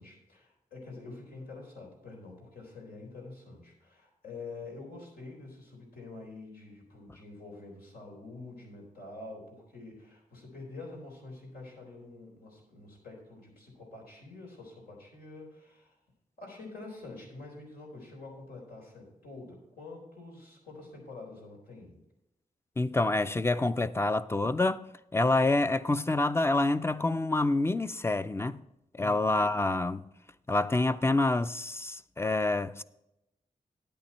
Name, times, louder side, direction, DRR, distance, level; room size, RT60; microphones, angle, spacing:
voice 1, 0.0-16.0 16.4-22.0, left 3 dB, 90° left, 4.0 m, -47 dB
voice 2, 22.8-28.6 29.0-30.0 30.5-32.8, left 2 dB, 15° left, 0.4 m, -27 dB
9.8 x 8.8 x 4.4 m
wide cardioid pair, 95°, 15 cm